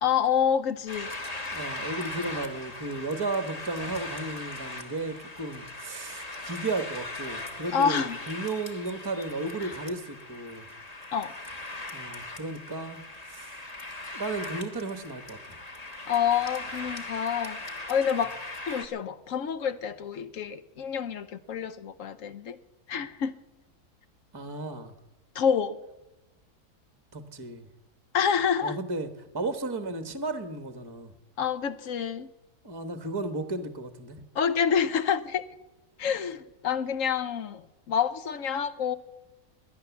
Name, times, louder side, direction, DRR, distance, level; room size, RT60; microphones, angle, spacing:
voice 1, 0.0-1.1 7.7-8.2 9.6-9.7 11.1-11.3 16.1-17.6 17.9-18.4 18.7-22.6 22.9-23.4 25.3-25.8 28.1-28.8 31.4-32.3 34.3-35.4 36.0-39.0, left 7 dB, 60° left, 14 dB, 1.0 m, -27 dB
sound 1, 0.9-18.9, left 2 dB, 25° left, 1.4 m, -39 dB
voice 2, 1.5-10.6 11.9-13.5 14.1-15.6 24.3-24.9 27.1-27.7 28.6-31.1 32.6-34.2, right 2 dB, 20° right, 10 dB, 0.9 m, -34 dB
18.0 x 10.5 x 7.1 m, 1.0 s
omnidirectional pair, 1.7 m